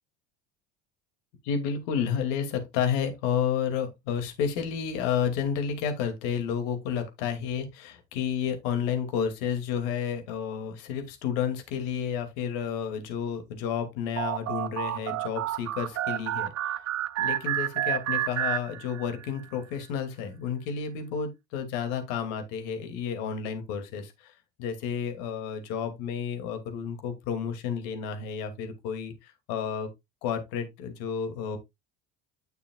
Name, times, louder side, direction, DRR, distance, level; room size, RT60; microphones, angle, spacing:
voice 1, 1.4-16.8 17.2-24.3 24.6-29.9 30.2-31.6, left 7 dB, 70° left, 2.6 m, -31 dB
sound 1, 14.2-19.3, right 12 dB, 40° right, 0.7 m, -30 dB
10.0 x 6.8 x 2.4 m
hypercardioid pair, 80°, 39 cm